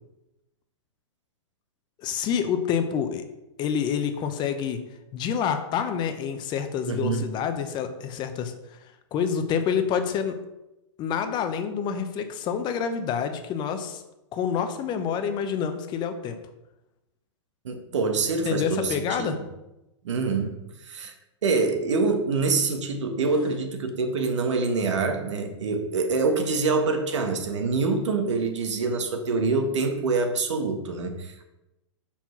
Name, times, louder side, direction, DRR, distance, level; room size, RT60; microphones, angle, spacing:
voice 1, 2.0-3.2 3.6-4.8 5.1-8.5 9.1-10.4 11.0-14.0 14.3-16.4 18.4-19.4, left 7 dB, 30° left, 8 dB, 0.7 m, -27 dB
voice 2, 6.9-7.3 17.6-19.3 20.0-20.5 20.8-21.1 21.4-31.4, right 4 dB, 75° right, 4 dB, 1.5 m, -25 dB
5.8 x 4.5 x 5.8 m, 0.94 s
hypercardioid pair, 125°, 16 cm